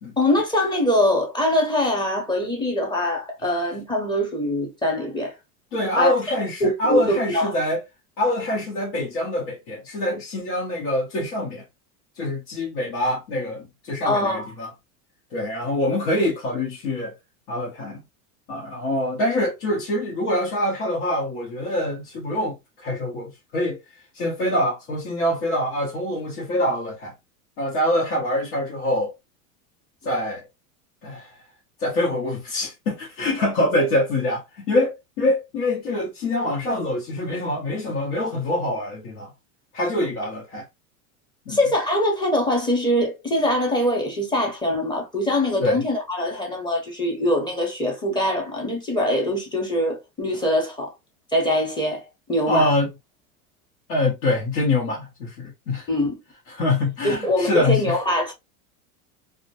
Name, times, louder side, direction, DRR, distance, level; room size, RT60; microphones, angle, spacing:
voice 1, 0.2-5.3 6.0-6.1 6.6-7.5 14.0-14.5 41.5-50.9 51.3-52.7 55.9-56.1 57.0-58.3, left 1 dB, 10° left, 0.7 m, -23 dB
voice 2, 5.7-7.8 8.2-11.6 12.2-14.7 15.3-17.1 17.5-18.0 18.5-27.1 27.6-29.1 30.0-30.4 31.0-31.4 31.8-39.3 39.7-40.7 41.5-41.6 45.6-45.8 52.5-52.9 53.9-55.9 56.5-58.0, left 1 dB, 75° left, 1.1 m, -25 dB
2.3 x 2.1 x 2.7 m
supercardioid pair, 125°, 44 cm